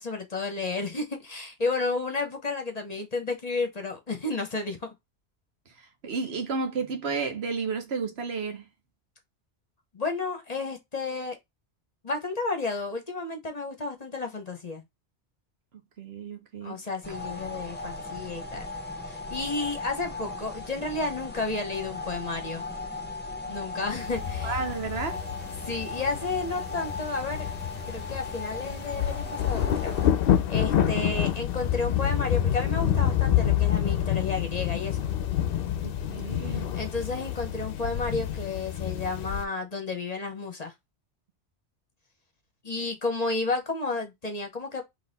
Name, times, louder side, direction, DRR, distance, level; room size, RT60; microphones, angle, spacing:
voice 1, 0.0-4.8 9.9-11.4 12.0-14.8 16.6-18.7 19.1-22.6 23.5-24.6 25.6-27.5 27.8-29.9 30.5-35.0 36.5-40.7 42.6-44.8, left 3 dB, 40° left, 1.0 m, -32 dB
voice 2, 5.8-8.7 16.0-16.8 24.4-25.2 35.8-36.7, right 4 dB, 65° right, 1.2 m, -32 dB
sound 1, 17.0-30.1, left 3 dB, 10° left, 0.7 m, -37 dB
sound 2, 24.0-39.4, left 10 dB, 60° left, 0.7 m, -28 dB
4.0 x 2.9 x 4.0 m
omnidirectional pair, 1.2 m